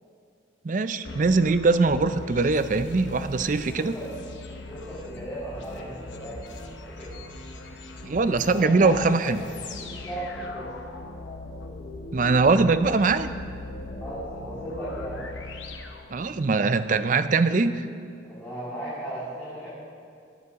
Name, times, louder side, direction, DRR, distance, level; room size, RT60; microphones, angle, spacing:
voice 1, 0.6-3.9 8.0-9.5 12.1-13.3 16.1-17.9, right 3 dB, 40° right, 12 dB, 0.4 m, -22 dB
sound 1, 1.0-16.7, left 2 dB, 75° left, 1.0 m, -40 dB
voice 2, 3.7-4.1 4.6-7.1 8.5-10.7 14.0-15.2 18.2-19.7, right 1 dB, 10° left, -12 dB, 2.9 m, -36 dB
18.5 x 9.6 x 3.7 m, 2.3 s
head